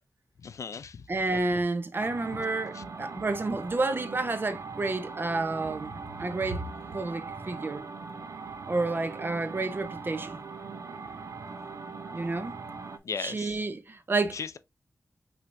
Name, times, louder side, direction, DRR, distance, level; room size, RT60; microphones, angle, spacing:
voice 1, 0.4-1.0 2.7-2.8 13.0-13.6 14.3-14.6, left 6 dB, 75° left, 0.4 m, -37 dB
voice 2, 1.1-6.6 6.9-7.9 8.7-10.4 12.1-12.6 13.2-14.4, right 3 dB, 40° right, 0.7 m, -30 dB
sound 1, 2.0-13.0, right 4 dB, 75° right, 0.6 m, -41 dB
5.7 x 3.4 x 2.5 m
wide cardioid pair, 105°, 5 cm